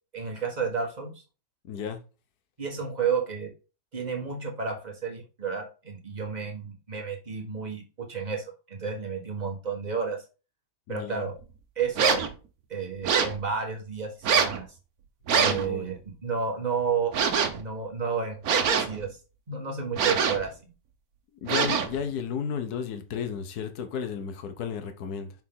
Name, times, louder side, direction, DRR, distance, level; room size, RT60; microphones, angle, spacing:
voice 1, 0.1-1.1 2.6-3.5 3.9-10.2 10.9-11.4 11.7-12.2 12.7-14.7 15.4-17.2 17.5-19.2 19.5-20.7, right 5 dB, 25° right, 1.6 m, -31 dB
voice 2, 1.7-2.0 10.9-11.2 15.3-15.9 21.4-25.3, left 7 dB, 65° left, 1.5 m, -33 dB
sound 1, 12.0-12.3 13.0-13.4 14.2-14.6 15.3-15.7 17.1-17.6 18.4-19.1 19.9-20.5 21.5-22.0, right 6 dB, 60° right, 1.4 m, -24 dB
6.2 x 4.6 x 3.7 m
omnidirectional pair, 1.8 m